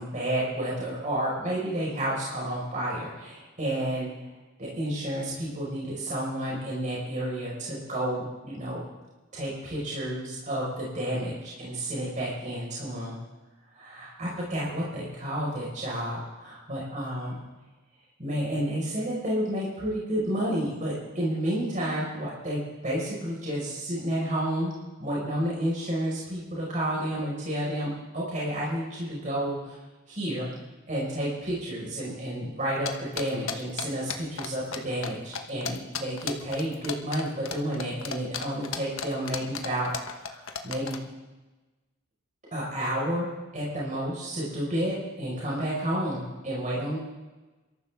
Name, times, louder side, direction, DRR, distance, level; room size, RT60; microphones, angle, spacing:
voice 1, 0.0-4.1 4.6-8.8 9.3-13.2 13.7-17.4 18.2-24.7 25.0-29.8 30.1-30.6 30.9-41.0 42.5-47.0, right 1 dB, 35° right, -5 dB, 5.2 m, -31 dB
riding horse foley, 32.9-34.8 35.0-35.1 35.3-41.0, left 6 dB, 75° left, 1.3 m, -33 dB
28.0 x 14.0 x 3.6 m, 1.2 s
head